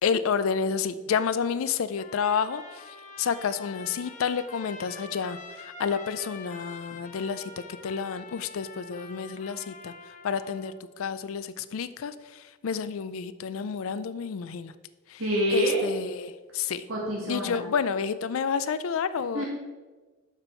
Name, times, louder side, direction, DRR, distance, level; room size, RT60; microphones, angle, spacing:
voice 1, 0.0-7.5 7.8-9.9 10.2-14.7 15.1-15.2 15.5-16.8 17.3-19.4, left 6 dB, 75° left, 14 dB, 0.4 m, -30 dB
Trumpet, 2.0-10.7, left 4 dB, 35° left, 0.8 m, -45 dB
voice 2, 15.2-15.8 16.9-17.7 19.3-19.5, equal, 80° right, -4 dB, 1.6 m, -26 dB
6.9 x 5.8 x 4.4 m, 1.3 s
head